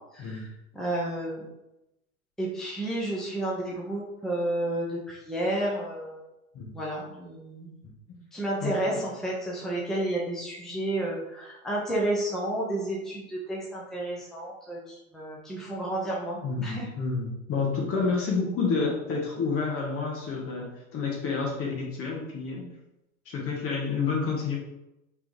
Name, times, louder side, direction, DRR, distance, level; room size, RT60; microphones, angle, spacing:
voice 1, 0.1-0.5 0.7-1.4 2.4-6.2 6.7-7.8 8.3-16.9, right 1 dB, ahead, -5 dB, 1.0 m, -31 dB
voice 2, 8.6-9.0 16.4-22.7 23.3-24.6, left 4 dB, 30° left, 0 dB, 1.2 m, -29 dB
5.1 x 3.3 x 3.1 m, 0.91 s
hypercardioid pair, 100°, 42 cm